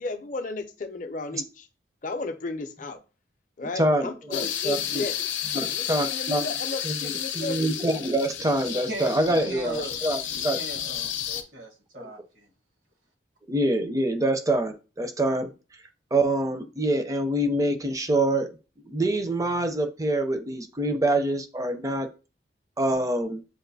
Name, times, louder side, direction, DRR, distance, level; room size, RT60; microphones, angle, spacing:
voice 1, 0.0-1.7 2.0-3.0 3.6-5.2 5.7-7.6, left 3 dB, 45° left, 0.5 m, -34 dB
voice 2, 3.8-5.1 5.5-6.5 6.8-10.6 13.5-15.5 16.1-18.5 18.8-22.1 22.8-23.4, right 1 dB, 20° right, 0.5 m, -25 dB
sound 1, 4.3-11.4, left 9 dB, 85° left, 0.6 m, -32 dB
voice 3, 8.6-10.0 10.3-12.5, right 1 dB, 85° right, 1.4 m, -38 dB
7.5 x 2.5 x 2.6 m
head